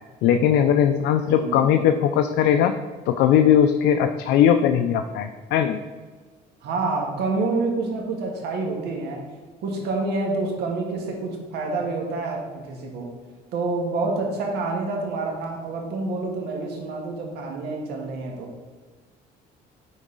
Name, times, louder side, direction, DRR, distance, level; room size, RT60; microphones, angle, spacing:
voice 1, 0.2-2.8 3.1-5.8, left 9 dB, 85° left, 7 dB, 0.4 m, -19 dB
voice 2, 1.3-1.9 6.6-9.2 9.6-13.1 13.5-18.5, right 3 dB, 80° right, 1 dB, 1.6 m, -28 dB
10.0 x 4.0 x 3.8 m, 1.4 s
cardioid pair, 110°, 17 cm